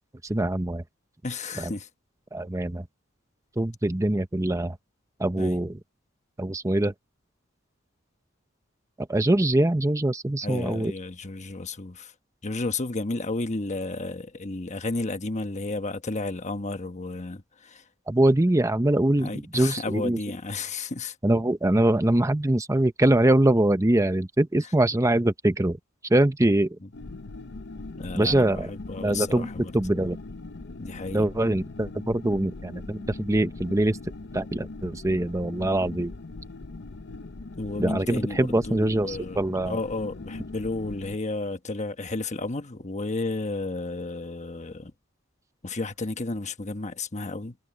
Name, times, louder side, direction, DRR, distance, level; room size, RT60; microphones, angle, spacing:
voice 1, 0.2-0.8 1.6-1.7 2.3-2.9 3.6-4.8 5.2-5.8 6.4-6.9 9.0-10.9 18.1-20.2 21.2-25.8 26.1-26.8 28.1-28.7 29.0-30.2 31.1-34.0 34.3-36.1 37.8-39.8, right 1 dB, 15° right, 0.8 m, -23 dB
voice 2, 1.2-1.9 5.4-5.5 10.4-12.1 12.4-17.8 19.2-21.1 28.0-29.7 30.8-31.2 37.6-39.4 39.6-44.9 45.6-47.5, left 3 dB, 35° left, 1.2 m, -32 dB
sound 1, 26.9-41.2, left 2 dB, 60° left, 0.8 m, -40 dB
head